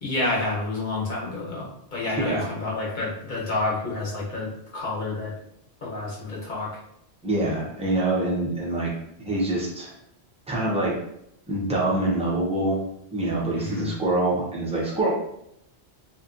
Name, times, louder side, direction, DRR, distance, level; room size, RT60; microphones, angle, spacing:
voice 1, 0.0-5.3 5.8-6.7 13.5-13.9, left 2 dB, 50° left, -4 dB, 0.9 m, -29 dB
voice 2, 2.0-2.5 7.2-8.9 9.2-9.9 10.5-11.0 11.5-12.8 13.1-15.2, right 2 dB, 10° right, -5 dB, 0.3 m, -25 dB
2.6 x 2.2 x 2.5 m, 0.77 s
omnidirectional pair, 1.1 m